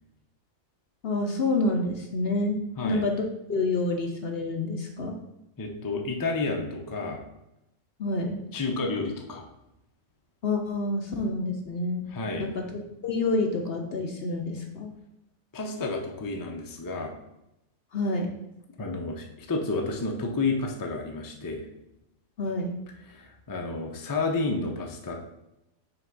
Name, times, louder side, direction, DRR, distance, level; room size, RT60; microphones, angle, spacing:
voice 1, 1.0-5.1 8.0-8.4 10.4-12.1 12.4-12.6 13.0-14.9 17.9-18.3 22.4-22.8, left 2 dB, 55° left, 2 dB, 0.8 m, -28 dB
voice 2, 5.6-7.2 8.5-9.4 12.1-12.5 15.5-17.1 18.8-21.6 23.1-25.1, left 3 dB, 20° left, 1 dB, 0.5 m, -30 dB
5.8 x 3.4 x 5.3 m, 0.87 s
omnidirectional pair, 1.4 m